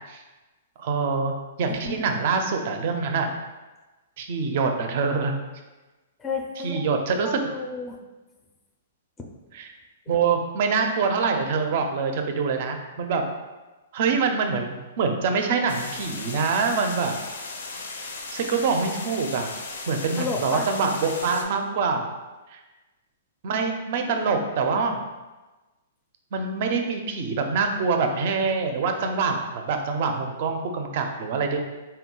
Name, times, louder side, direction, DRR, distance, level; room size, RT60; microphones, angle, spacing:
voice 1, 0.8-3.3 4.2-5.4 6.6-7.4 9.5-9.7 10.1-13.2 13.9-17.2 18.3-19.5 19.9-22.1 22.5-22.6 23.4-25.0 26.3-31.6, right 5 dB, 50° right, 5 dB, 0.4 m, -25 dB
voice 2, 1.6-2.1 6.2-7.0 7.2-8.0 9.2-9.3 20.2-20.7, left 4 dB, 15° left, 1 dB, 0.4 m, -32 dB
sound 1, 15.7-21.4, left 3 dB, 85° left, 0.5 m, -36 dB
3.9 x 2.2 x 3.7 m, 1.2 s
hypercardioid pair, 150°, 0 cm